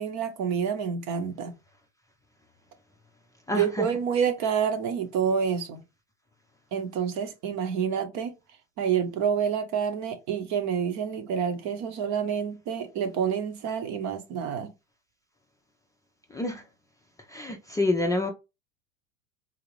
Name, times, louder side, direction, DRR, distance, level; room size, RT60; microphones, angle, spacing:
voice 1, 0.0-1.5 3.5-5.8 6.7-8.3 8.8-14.7, right 7 dB, 45° right, 1.0 m, -28 dB
voice 2, 3.5-3.9 16.3-16.6 17.3-18.3, left 2 dB, 10° left, 0.5 m, -27 dB
4.0 x 2.4 x 3.1 m
hypercardioid pair, 105°, 38 cm